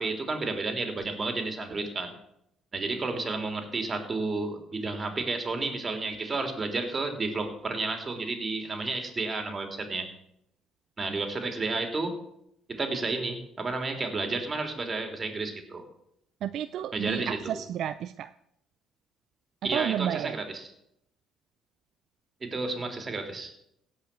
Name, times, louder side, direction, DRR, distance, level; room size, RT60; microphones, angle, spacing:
voice 1, 0.0-2.1 2.7-10.1 11.0-12.1 12.7-15.8 16.9-17.4 19.6-20.7 22.4-23.5, right 3 dB, 35° right, 3.1 m, -31 dB
voice 2, 16.4-18.3 19.6-20.4, right 10 dB, 65° right, 0.4 m, -31 dB
17.0 x 5.8 x 7.5 m
supercardioid pair, 80°, 0 cm